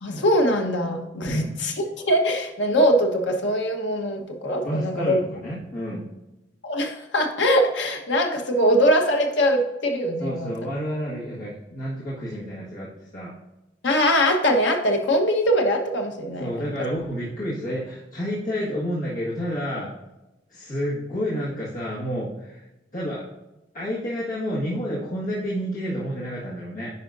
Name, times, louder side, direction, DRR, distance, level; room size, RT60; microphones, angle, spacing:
voice 1, 0.0-5.2 6.6-10.5 13.8-16.7, equal, 75° left, 3 dB, 1.2 m, -22 dB
voice 2, 4.6-6.1 10.2-13.3 16.4-19.9 20.5-22.6 22.9-23.2 23.7-26.9, equal, 50° left, -8 dB, 1.7 m, -30 dB
10.0 x 5.1 x 2.6 m, 0.98 s
head